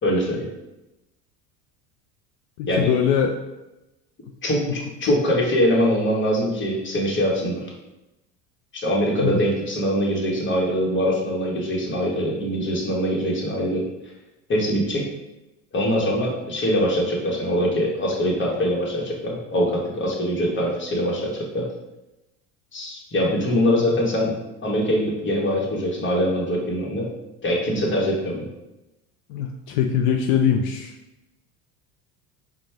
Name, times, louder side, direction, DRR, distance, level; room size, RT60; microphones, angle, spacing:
voice 1, 0.0-0.5 2.7-2.9 4.4-7.6 8.7-13.8 14.5-15.0 15.7-21.7 22.7-24.4 24.6-27.1 27.4-28.5, equal, 25° left, -2 dB, 1.3 m, -23 dB
voice 2, 2.6-3.3 5.0-5.2 9.2-9.4 29.3-30.9, left 8 dB, 70° left, 3 dB, 0.5 m, -22 dB
4.2 x 2.4 x 3.3 m, 0.97 s
hypercardioid pair, 80°, 42 cm